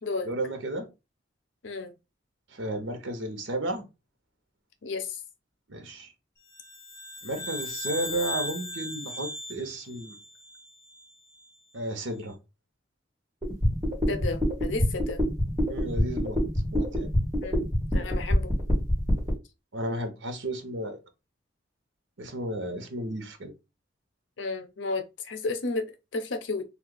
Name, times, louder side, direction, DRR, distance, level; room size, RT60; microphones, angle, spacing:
voice 1, 0.2-0.9 2.5-3.8 5.7-6.1 7.2-10.2 11.7-12.4 15.7-16.4 16.7-17.1 19.7-21.0 22.2-23.5, right 1 dB, 80° right, 0.8 m, -33 dB
voice 2, 4.8-5.2 14.1-15.2 17.4-17.6 17.9-18.5 24.4-26.6, left 3 dB, 75° left, 0.6 m, -32 dB
sound 1, 6.5-11.1, left 1 dB, 15° left, 0.6 m, -37 dB
sound 2, 13.4-19.3, left 1 dB, 20° right, 1.3 m, -25 dB
2.8 x 2.3 x 3.8 m
head